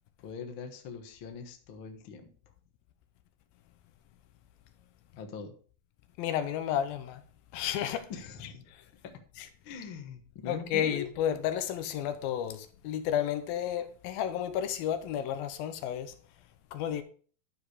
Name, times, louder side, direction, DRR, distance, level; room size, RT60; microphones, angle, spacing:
voice 1, 0.2-2.3 5.1-5.5 8.1-8.6 9.0-9.1 9.6-11.1, left 6 dB, 60° left, 1.4 m, -42 dB
voice 2, 6.2-7.2 7.5-8.1 8.7-8.8 9.4-9.5 10.5-16.1 16.7-17.0, left 10 dB, 85° left, 2.7 m, -32 dB
11.5 x 4.8 x 4.9 m
omnidirectional pair, 4.1 m